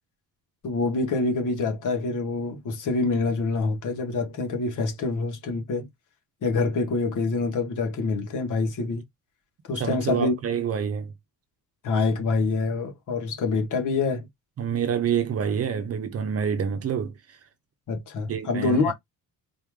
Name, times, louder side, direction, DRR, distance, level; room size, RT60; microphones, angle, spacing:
voice 1, 0.6-5.9 6.4-9.0 9.7-10.3 11.8-14.3 17.9-18.9, left 3 dB, 55° left, 1.9 m, -26 dB
voice 2, 9.7-11.1 14.6-17.2 18.3-18.9, right 7 dB, 40° right, 0.8 m, -27 dB
4.4 x 3.0 x 3.7 m
cardioid pair, 170°, 35 cm